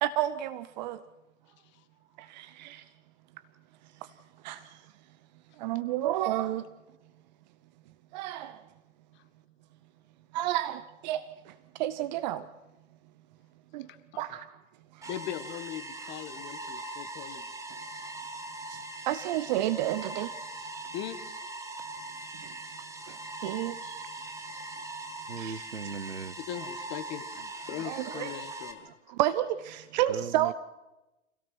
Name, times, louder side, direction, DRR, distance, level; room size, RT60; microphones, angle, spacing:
voice 1, 0.0-1.0 2.2-2.8 4.0-4.1 4.4-4.8 5.6-6.7 8.1-8.6 10.3-12.5 13.7-13.9 14.2-14.6 14.9-15.1 18.7-18.8 19.1-20.3 22.4-22.5 23.1-24.0 25.4-25.6 27.8-28.4 28.8-30.5, right 13 dB, 35° right, 0.8 m, -31 dB
sound 1, 15.0-28.7, right 2 dB, 10° right, 1.9 m, -41 dB
voice 2, 15.1-17.5 20.9-21.2 26.5-28.8, left 11 dB, 30° left, 1.5 m, -39 dB
voice 3, 25.3-26.4 30.1-30.5, right 5 dB, 90° right, 0.8 m, -38 dB
27.0 x 17.0 x 6.1 m
figure-of-eight pair, 105°, 38 cm